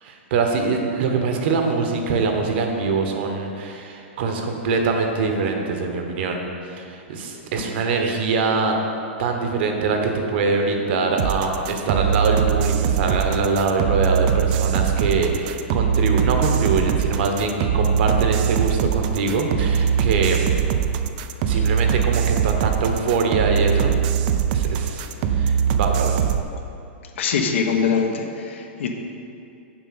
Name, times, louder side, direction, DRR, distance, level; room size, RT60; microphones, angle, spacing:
voice 1, 0.0-6.5 6.8-8.7 9.2-20.4 21.4-24.0 24.5-26.2, right 4 dB, 55° right, 3 dB, 1.2 m, -23 dB
sound 1, 11.2-26.4, right 8 dB, 40° right, 0.4 m, -21 dB
voice 2, 27.2-28.9, left 6 dB, 70° left, 4 dB, 1.0 m, -23 dB
7.5 x 5.2 x 6.7 m, 2.6 s
hypercardioid pair, 155°, 7 cm